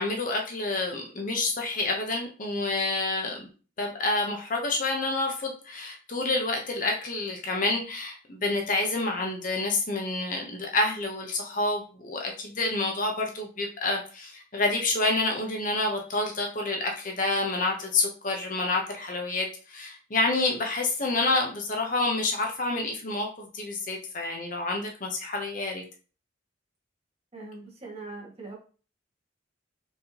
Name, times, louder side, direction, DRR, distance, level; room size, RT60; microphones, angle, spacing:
voice 1, 0.0-3.5 3.8-25.8, left 2 dB, 40° left, 2 dB, 0.8 m, -28 dB
voice 2, 27.3-28.5, right 3 dB, 30° right, -4 dB, 1.6 m, -41 dB
4.5 x 3.5 x 2.8 m, 0.37 s
head